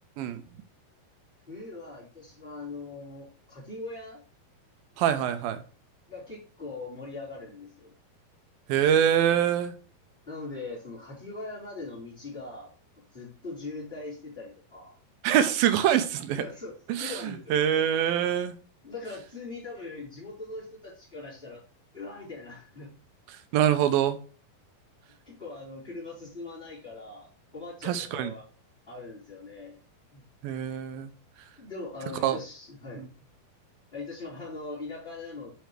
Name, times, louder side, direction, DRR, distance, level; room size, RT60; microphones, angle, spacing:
voice 1, 1.5-4.2 6.1-7.9 10.3-12.7 13.1-15.0 16.3-17.5 18.8-21.6 21.9-22.9 25.2-28.4 28.9-29.8 30.1-30.2 31.6-33.0 33.9-35.5, left 3 dB, 10° left, 3.3 m, -41 dB
voice 2, 5.0-5.6 8.7-9.7 15.2-16.4 16.9-18.5 23.5-24.2 27.8-28.3 30.4-31.1 32.2-32.4 33.0-33.1, right 10 dB, 80° right, 2.4 m, -24 dB
8.2 x 4.6 x 4.6 m
omnidirectional pair, 4.4 m